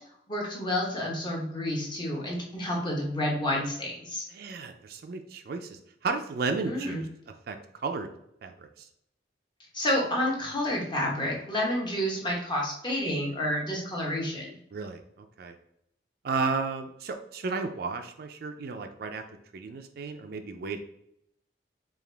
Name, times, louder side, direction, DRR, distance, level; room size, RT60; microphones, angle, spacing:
voice 1, 0.3-4.2 6.6-7.0 9.7-14.6, left 1 dB, 25° left, -2 dB, 1.0 m, -29 dB
voice 2, 4.3-5.8 6.0-7.1 7.5-7.6 7.8-8.1 8.4-8.7 14.7-15.0 15.4-15.5 16.2-19.2 19.5-20.8, right 4 dB, 55° right, 6 dB, 0.4 m, -33 dB
4.8 x 2.4 x 3.3 m, 0.74 s
head